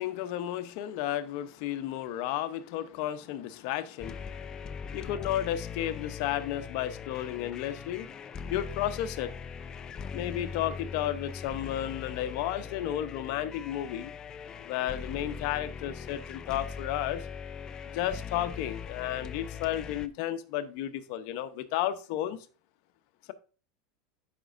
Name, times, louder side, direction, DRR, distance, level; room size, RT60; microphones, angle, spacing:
voice 1, 0.0-4.4 4.9-8.1 8.5-9.3 10.1-14.1 14.7-17.3 17.9-22.4, left 12 dB, 60° left, 0.7 m, -33 dB
sound 1, 4.0-20.1, left 6 dB, 25° left, 0.4 m, -40 dB
12.0 x 5.1 x 2.5 m
supercardioid pair, 140°, 3 cm